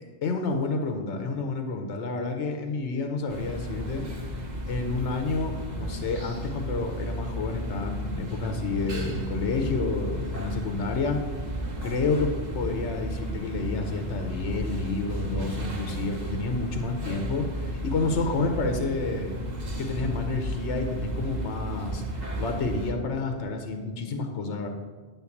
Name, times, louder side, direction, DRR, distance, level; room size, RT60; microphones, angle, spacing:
voice 1, 0.2-4.0 4.7-11.2 11.8-19.3 19.8-22.0 22.4-24.7, left 3 dB, 85° left, 4 dB, 1.1 m, -29 dB
sound 1, 3.3-22.9, right 1 dB, 40° right, 1.1 m, -33 dB
9.6 x 3.8 x 7.0 m, 1.5 s
omnidirectional pair, 1.1 m